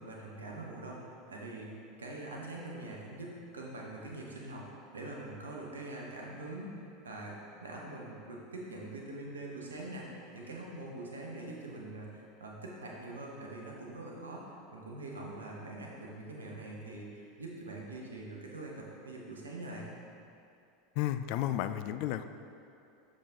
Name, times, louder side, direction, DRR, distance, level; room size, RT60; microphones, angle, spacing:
voice 1, 0.0-1.7 2.0-19.9, right 2 dB, 85° right, -2 dB, 1.1 m, -44 dB
voice 2, 21.0-22.2, left 12 dB, 60° left, 11 dB, 0.3 m, -32 dB
6.8 x 5.3 x 3.6 m, 2.6 s
hypercardioid pair, 85°, 0 cm